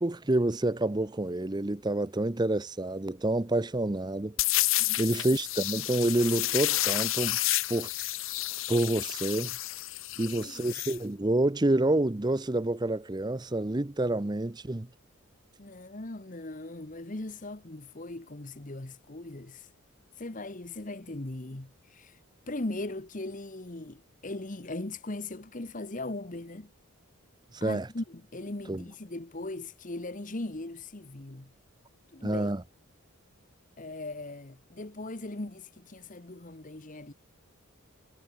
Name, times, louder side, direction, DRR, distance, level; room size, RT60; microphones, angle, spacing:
voice 1, 0.0-4.4 5.0-7.4 7.7-7.9 8.7-9.6 10.2-14.9 27.5-27.9 28.7-28.8 32.2-32.6, right 1 dB, 20° right, 0.6 m, -28 dB
sound 1, 4.4-11.0, left 16 dB, 70° left, 1.2 m, -30 dB
voice 2, 4.8-5.3 10.1-10.8 15.6-19.7 20.2-22.2 22.5-26.7 27.6-31.5 32.1-32.5 33.8-37.1, left 2 dB, 35° left, 1.2 m, -39 dB
head